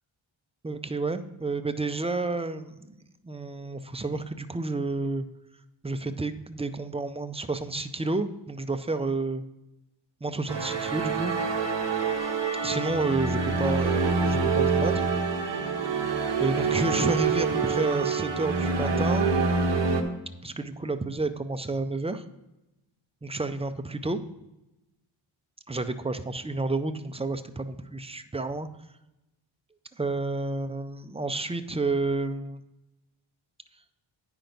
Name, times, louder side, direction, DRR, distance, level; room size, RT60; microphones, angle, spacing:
voice 1, 0.6-2.9 3.2-5.3 5.8-9.4 10.2-11.4 12.6-15.0 16.4-19.3 20.4-22.2 23.2-24.2 25.7-28.7 30.0-32.6, right 3 dB, 15° right, 9 dB, 0.3 m, -30 dB
sound 1, 10.5-20.0, right 4 dB, 60° right, 1.2 m, -26 dB
9.2 x 5.9 x 5.1 m, 0.93 s
wide cardioid pair, 155°, 48 cm